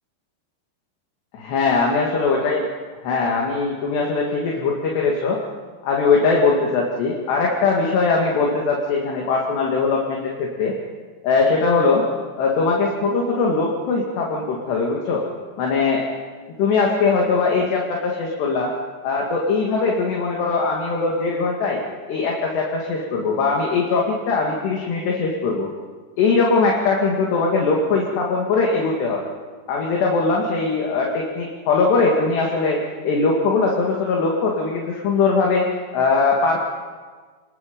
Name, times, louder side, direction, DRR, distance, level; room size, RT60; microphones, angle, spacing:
voice 1, 1.3-2.7 3.0-5.4 5.8-10.7 11.2-12.1 12.4-15.2 15.6-16.1 16.6-18.7 19.0-21.8 22.1-25.7 26.2-29.3 29.7-36.6, left 4 dB, 70° left, -1 dB, 4.2 m, -21 dB
29.5 x 20.5 x 5.3 m, 1.5 s
omnidirectional pair, 5.3 m